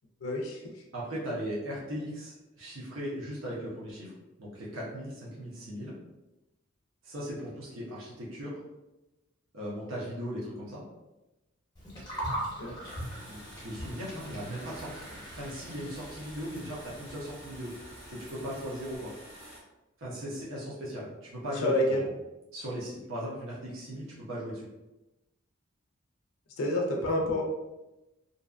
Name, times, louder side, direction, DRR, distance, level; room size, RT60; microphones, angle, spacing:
voice 1, 0.2-0.7 12.6-12.7 21.6-22.0 26.6-27.4, left 1 dB, 80° left, 0 dB, 0.4 m, -28 dB
voice 2, 0.9-4.1 4.4-5.9 7.0-8.6 9.5-10.8 13.3-19.1 20.0-22.1 22.5-24.7, equal, 65° right, -6 dB, 0.7 m, -38 dB
Gurgling, 11.7-19.0, right 1 dB, 20° left, 0.8 m, -41 dB
sound 1, 12.8-19.6, equal, 30° right, 0.7 m, -49 dB
2.6 x 2.2 x 2.4 m, 1.0 s
head